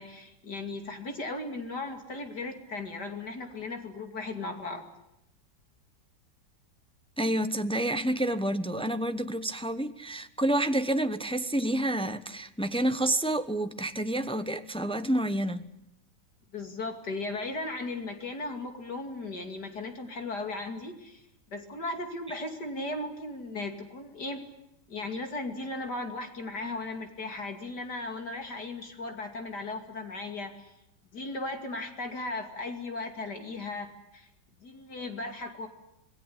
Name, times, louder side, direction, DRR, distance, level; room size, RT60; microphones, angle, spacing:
voice 1, 0.0-4.8 16.5-21.2 21.5-24.4 24.9-30.7 31.1-34.3 34.6-35.7, left 2 dB, 55° left, 3.1 m, -36 dB
voice 2, 7.2-15.6, right 1 dB, 5° left, 0.4 m, -29 dB
26.5 x 20.0 x 8.5 m
omnidirectional pair, 2.2 m